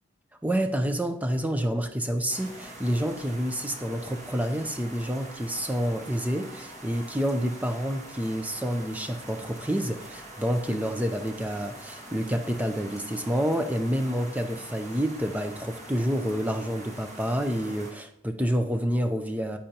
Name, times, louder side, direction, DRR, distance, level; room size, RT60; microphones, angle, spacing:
voice 1, 0.4-19.6, equal, 5° right, 0.6 m, -28 dB
sound 1, 2.3-17.9, right 1 dB, 35° right, 1.8 m, -44 dB
9.9 x 8.8 x 2.9 m
head